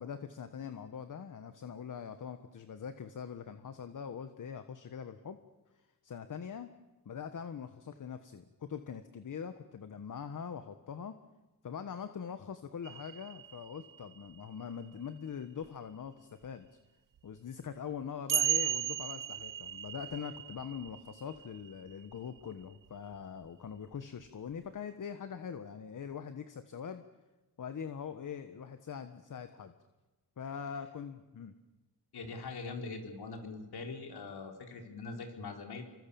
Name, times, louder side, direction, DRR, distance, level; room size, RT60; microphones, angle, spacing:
voice 1, 0.0-5.4 5.7-6.7 7.0-11.2 11.6-16.8 17.2-27.0 27.6-29.7 30.4-31.6, left 7 dB, 50° left, 9 dB, 1.4 m, -43 dB
sound 1, 12.8-14.4 15.6-15.7 17.2-17.3 18.3-22.4 23.9-24.0, right 10 dB, 55° right, 1.0 m, -36 dB
voice 2, 32.1-35.8, left 3 dB, 75° left, 3 dB, 4.2 m, -42 dB
27.5 x 24.0 x 7.1 m, 1.1 s
cardioid pair, 100°, 39 cm